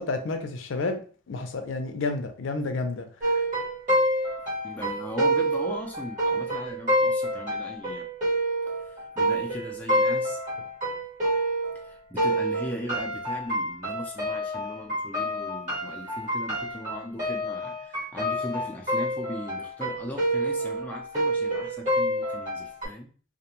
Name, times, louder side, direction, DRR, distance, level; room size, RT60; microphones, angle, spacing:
voice 1, 0.0-3.1, left 3 dB, 85° left, 0.5 m, -30 dB
sound 1, 3.2-11.9 12.2-22.8, right 1 dB, 40° right, 1.2 m, -27 dB
voice 2, 4.6-8.1 8.8-10.4 11.8-23.1, equal, 10° left, 0.4 m, -38 dB
2.4 x 2.2 x 2.9 m
head